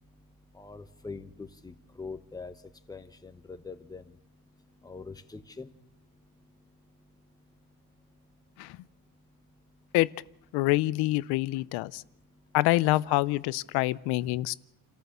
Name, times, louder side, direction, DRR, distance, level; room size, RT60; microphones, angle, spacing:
voice 1, 0.6-2.5 2.9-4.0 4.8-5.7, left 4 dB, 10° left, 9 dB, 1.1 m, -43 dB
voice 2, 10.5-12.0 12.5-14.5, left 19 dB, 85° left, 19 dB, 0.7 m, -26 dB
29.0 x 14.0 x 6.8 m, 0.83 s
cardioid pair, 135°, 38 cm